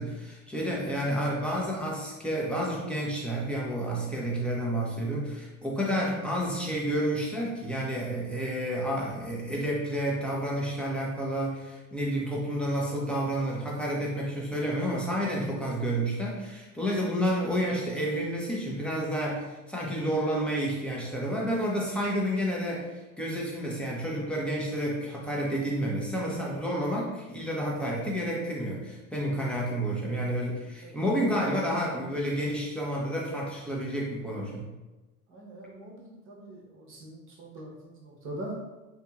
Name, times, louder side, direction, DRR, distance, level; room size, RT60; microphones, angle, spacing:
voice 1, 0.0-34.6, equal, ahead, -5 dB, 0.6 m, -30 dB
voice 2, 35.3-38.6, right 1 dB, 30° right, -3 dB, 0.9 m, -42 dB
2.9 x 2.6 x 2.3 m, 1.1 s
hypercardioid pair, 85°, 43 cm